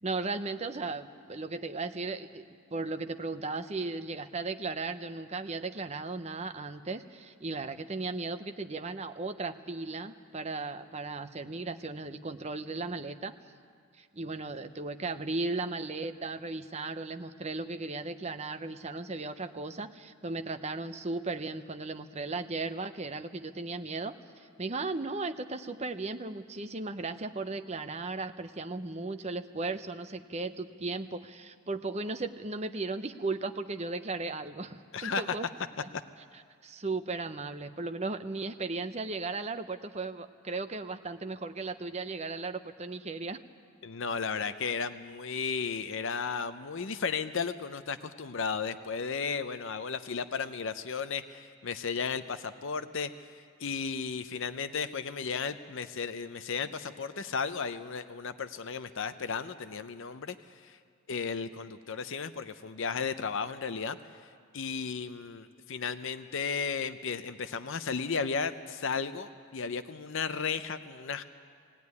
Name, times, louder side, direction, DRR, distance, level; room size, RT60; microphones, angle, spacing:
voice 1, 0.0-2.5 2.7-13.3 14.0-35.5 36.6-43.4, right 3 dB, 30° right, 8 dB, 0.7 m, -36 dB
voice 2, 34.9-35.4 43.8-53.1 53.6-60.8 61.1-64.0 64.5-71.2, left 5 dB, 55° left, 11 dB, 0.6 m, -34 dB
19.0 x 17.0 x 9.6 m, 2.1 s
head